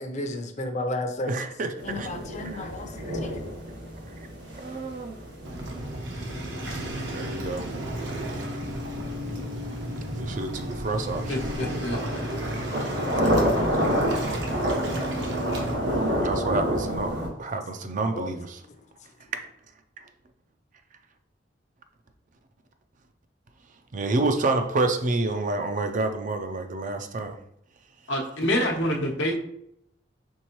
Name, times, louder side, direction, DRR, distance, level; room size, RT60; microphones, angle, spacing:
voice 1, 0.0-1.3 1.8-3.4 18.1-18.3 18.7-18.8, left 1 dB, 40° left, 0.6 m, -33 dB
voice 2, 1.3-2.1 2.5-2.7 4.6-5.2 7.1-7.7 10.1-11.4 14.1-14.4 16.2-18.6 23.9-27.4, right 3 dB, 45° right, 0.4 m, -28 dB
sound 1, 1.8-17.3, equal, 85° right, 1.5 m, -30 dB
Waves surf, 5.4-15.7, right 1 dB, 70° right, 0.9 m, -33 dB
voice 3, 11.3-12.2 28.1-29.4, equal, 90° left, 0.9 m, -27 dB
4.5 x 3.5 x 3.0 m
head